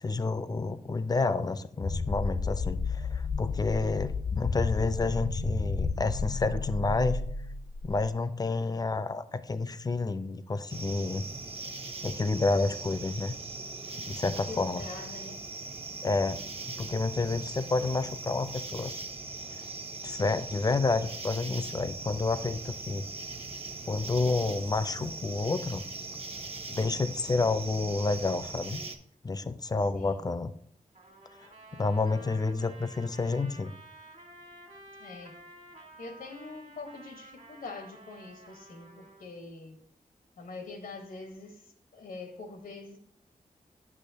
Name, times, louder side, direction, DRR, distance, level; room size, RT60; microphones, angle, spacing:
voice 1, 0.0-7.2 7.8-11.2 12.0-13.3 14.0-14.8 16.0-16.4 16.7-19.0 20.0-23.0 23.9-25.8 26.7-28.8 29.2-30.5 31.4-33.7, left 3 dB, 25° left, 0.4 m, -29 dB
sound 1, 1.8-8.1, left 4 dB, 70° left, 0.8 m, -32 dB
sound 2, 10.7-29.0, right 3 dB, 40° right, 0.8 m, -40 dB
voice 2, 14.2-15.5 29.9-30.2 32.2-32.4 35.0-35.4 36.0-39.8 40.4-43.0, left 3 dB, 85° left, 1.1 m, -44 dB
Trumpet, 30.9-39.3, right 2 dB, 60° right, 1.5 m, -52 dB
8.5 x 6.1 x 2.7 m
wide cardioid pair, 70°, 14 cm